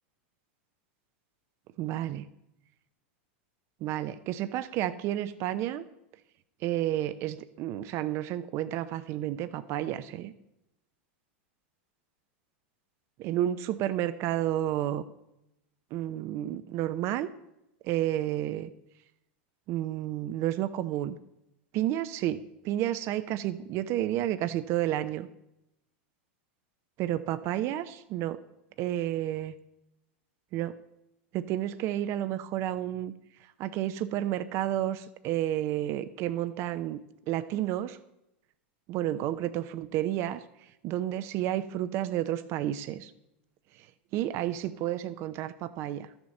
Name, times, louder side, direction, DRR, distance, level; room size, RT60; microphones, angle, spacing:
voice 1, 1.8-2.3 3.8-5.8 6.6-10.3 13.2-15.0 15.9-17.3 17.8-18.7 19.7-21.2 21.7-25.3 27.0-28.4 28.8-29.5 30.5-30.7 31.3-33.1 33.6-37.0 37.3-38.0 38.9-40.4 40.8-43.1 44.1-46.1, right 13 dB, 45° right, 11 dB, 0.6 m, -31 dB
12.5 x 7.3 x 6.5 m, 0.87 s
hypercardioid pair, 105°, 6 cm